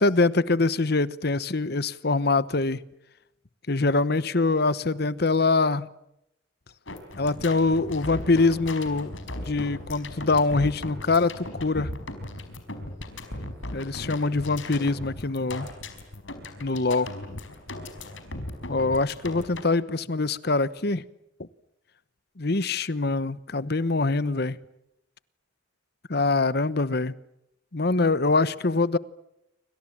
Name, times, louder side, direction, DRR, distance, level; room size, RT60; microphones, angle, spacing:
voice 1, 0.0-2.8 3.7-5.9 7.2-9.1 9.4-11.9 13.7-15.7 16.6-17.1 18.7-21.0 22.4-24.6 26.1-27.1 27.7-29.0, left 3 dB, 55° left, 17 dB, 1.0 m, -24 dB
sound 1, 6.9-19.6, left 1 dB, 85° left, 4.9 m, -38 dB
28.5 x 26.0 x 7.4 m, 0.84 s
head